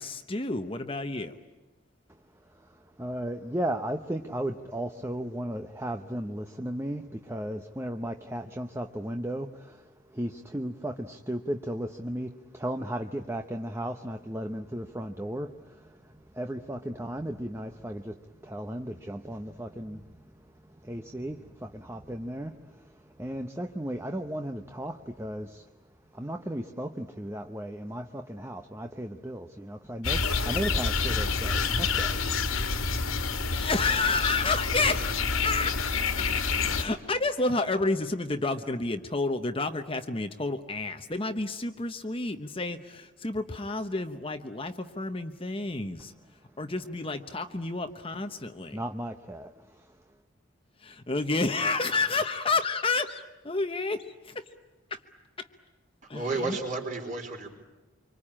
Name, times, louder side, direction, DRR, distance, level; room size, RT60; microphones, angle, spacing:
voice 1, 0.0-1.4 33.5-35.1 35.4-35.8 36.2-36.3 36.7-46.1 46.6-48.8 50.8-54.4 54.9-55.0 55.4-55.5 56.1-56.6, left 3 dB, 25° left, 1.0 m, -30 dB
voice 2, 2.1-25.7 26.1-32.3 48.7-50.0, right 1 dB, 10° right, 0.8 m, -36 dB
sound 1, 30.0-36.9, left 4 dB, 80° left, 2.2 m, -28 dB
voice 3, 56.1-57.5, right 3 dB, 40° right, 4.5 m, -32 dB
26.0 x 25.0 x 8.8 m
head